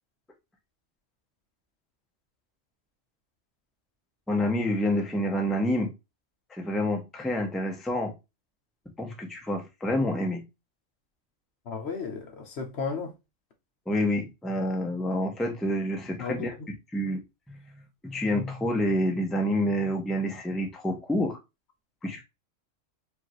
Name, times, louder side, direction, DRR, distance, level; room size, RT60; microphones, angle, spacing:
voice 1, 4.3-5.9 6.5-8.1 9.0-10.4 13.9-16.5 16.9-17.2 17.5-17.6 18.0-21.4 22.0-22.2, left 1 dB, ahead, 0.7 m, -28 dB
voice 2, 11.7-13.1 16.2-16.7, left 5 dB, 60° left, 1.2 m, -34 dB
5.0 x 2.6 x 3.0 m
omnidirectional pair, 1.3 m